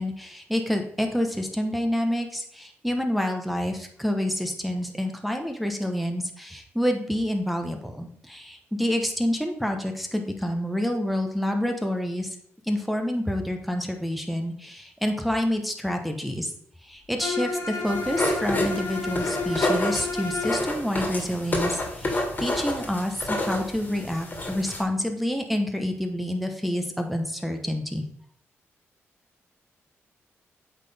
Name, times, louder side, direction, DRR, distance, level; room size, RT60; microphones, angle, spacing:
voice 1, 0.0-12.3 12.6-16.5 16.8-28.0, left 1 dB, ahead, 4 dB, 1.0 m, -28 dB
Bowed string instrument, 17.2-20.7, left 3 dB, 65° left, 1.7 m, -31 dB
sound 1, 17.9-24.8, left 1 dB, 35° left, 2.0 m, -29 dB
8.1 x 3.8 x 3.5 m, 0.66 s
cardioid pair, 65°, 5 cm